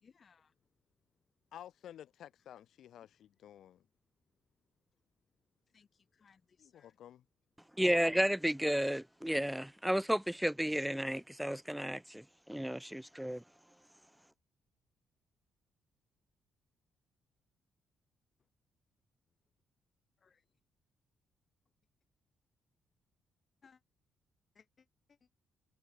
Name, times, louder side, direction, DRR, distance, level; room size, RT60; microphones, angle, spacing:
voice 1, 0.0-0.5 3.0-3.1 5.7-7.0 20.2-20.4 23.6-23.8 24.5-25.2, left 6 dB, 45° left, 1.6 m, -66 dB
voice 2, 1.5-3.8 6.6-7.2, left 11 dB, 70° left, 1.1 m, -53 dB
voice 3, 7.8-12.2 12.5-13.4, equal, 5° right, 0.4 m, -32 dB
cardioid pair, 90°, 0 cm